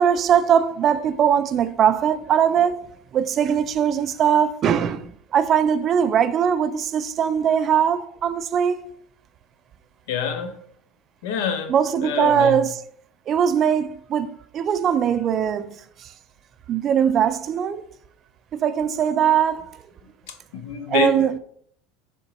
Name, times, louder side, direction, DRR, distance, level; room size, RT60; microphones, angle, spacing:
voice 1, 0.0-2.8 3.1-8.8 11.7-12.8 13.3-16.1 16.7-17.8 18.5-19.8 20.9-21.4, right 8 dB, 40° right, 0.4 m, -21 dB
voice 2, 10.1-10.6 11.2-11.7 12.0-12.6 20.3-21.2, left 7 dB, 70° left, 0.6 m, -26 dB
5.1 x 2.2 x 4.0 m
hypercardioid pair, 85°, 0 cm